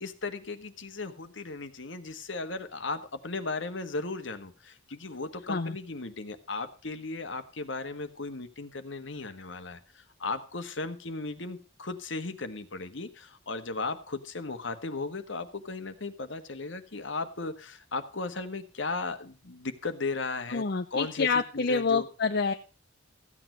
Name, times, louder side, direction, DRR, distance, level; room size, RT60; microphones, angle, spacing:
voice 1, 0.0-20.6 20.9-21.3 21.5-22.1, left 3 dB, 70° left, 8 dB, 1.5 m, -36 dB
voice 2, 20.5-22.5, left 4 dB, 55° left, 7 dB, 0.7 m, -27 dB
15.0 x 8.9 x 4.5 m, 0.35 s
head